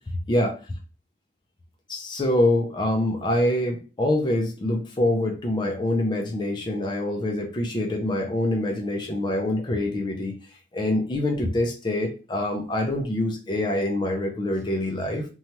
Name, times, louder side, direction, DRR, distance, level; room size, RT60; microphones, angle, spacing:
voice 1, 1.9-10.4 10.7-15.3, left 1 dB, 25° left, 1 dB, 0.4 m, -25 dB
3.0 x 2.2 x 2.8 m, 0.35 s
head